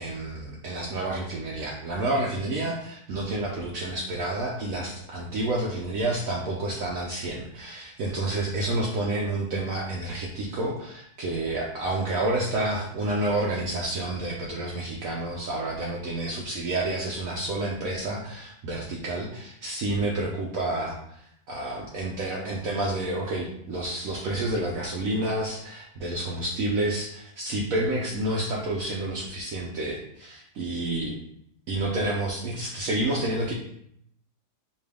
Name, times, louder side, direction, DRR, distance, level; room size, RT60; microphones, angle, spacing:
voice 1, 0.0-21.2 21.5-31.2 31.7-33.5, right 2 dB, 65° right, -3 dB, 1.0 m, -29 dB
4.5 x 2.7 x 3.4 m, 0.71 s
omnidirectional pair, 1.7 m